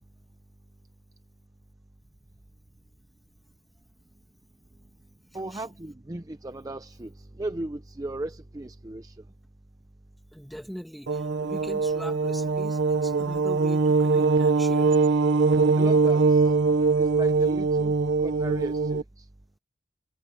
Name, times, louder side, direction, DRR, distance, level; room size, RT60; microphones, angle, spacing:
voice 1, 5.3-9.2 15.8-16.4 17.0-17.9 18.2-19.2, right 2 dB, 20° right, 0.6 m, -36 dB
voice 2, 10.3-14.9, equal, ahead, 2.3 m, -41 dB
sound 1, 11.1-19.0, right 4 dB, 80° right, 0.9 m, -22 dB
head